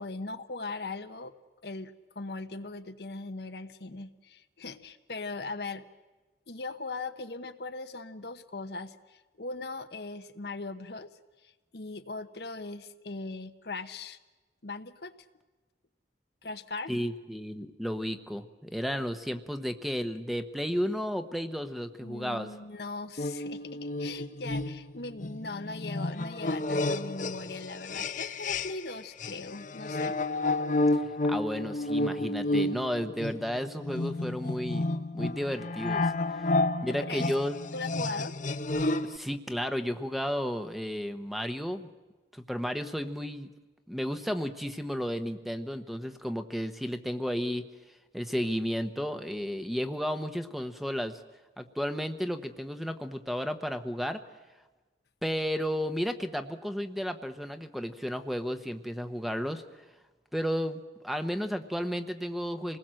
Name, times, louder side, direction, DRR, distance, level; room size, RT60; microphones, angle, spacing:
voice 1, 0.0-1.3 1.6-5.8 6.5-11.1 11.4-14.2 14.6-15.1 16.4-16.9 22.0-30.1 36.9-37.3 37.7-38.3, left 3 dB, 65° left, 9 dB, 1.1 m, -39 dB
voice 2, 16.9-22.5 31.0-34.9 35.1-36.4 36.8-37.6 39.0-41.9 42.3-43.5 43.9-47.6 48.1-51.2 51.6-54.2 55.2-59.6 60.3-62.8, equal, ahead, 8 dB, 1.0 m, -33 dB
sound 1, 23.2-28.9 29.2-39.2, left 2 dB, 45° left, 0.8 m, -31 dB
27.5 x 19.5 x 7.7 m, 1.2 s
head